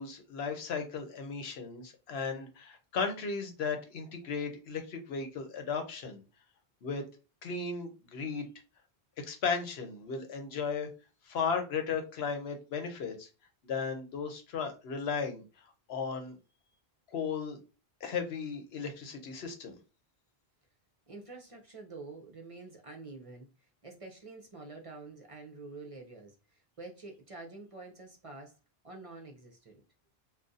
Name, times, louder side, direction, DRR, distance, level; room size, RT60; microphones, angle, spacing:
voice 1, 0.0-6.2 6.8-7.0 7.4-8.5 9.2-10.9 11.3-13.3 13.6-15.4 15.9-16.4 17.1-17.6 18.0-19.8, left 5 dB, 85° left, 6 dB, 1.0 m, -35 dB
voice 2, 21.1-28.5 28.8-29.7, right 3 dB, 40° right, 2 dB, 0.6 m, -48 dB
2.5 x 2.3 x 3.8 m, 0.31 s
omnidirectional pair, 1.0 m